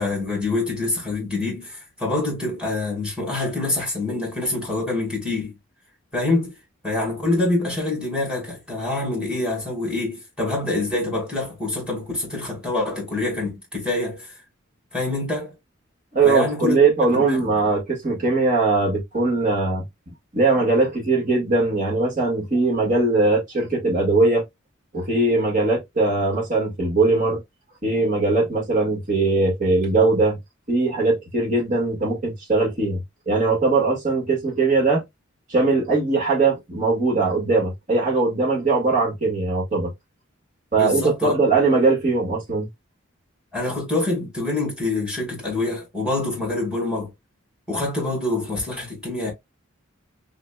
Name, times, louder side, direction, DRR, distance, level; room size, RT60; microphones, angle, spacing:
voice 1, 0.0-5.5 6.1-6.5 6.8-14.4 14.9-15.6 16.2-16.8 17.1-17.5 40.8-41.3 43.5-47.1 47.7-49.3, left 2 dB, 5° right, 2.3 m, -26 dB
voice 2, 16.1-19.8 20.3-24.4 24.9-27.4 27.8-30.4 30.7-35.0 35.5-39.9 40.7-42.7, right 3 dB, 40° right, 1.8 m, -20 dB
4.1 x 3.9 x 2.2 m
head